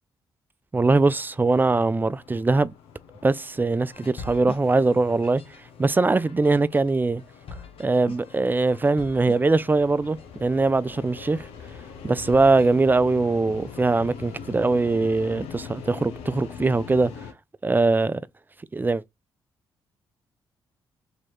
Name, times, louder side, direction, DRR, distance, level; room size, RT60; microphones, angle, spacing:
voice 1, 0.7-2.7 3.2-5.4 5.8-7.2 7.8-11.5 12.0-17.1 17.6-18.2 18.7-19.0, right 3 dB, 20° right, 0.4 m, -21 dB
sound 1, 1.1-17.3, left 7 dB, 80° left, 0.7 m, -43 dB
sound 2, 3.9-12.7, left 5 dB, 65° left, 1.1 m, -45 dB
3.0 x 2.9 x 4.3 m
hypercardioid pair, 45°, 10 cm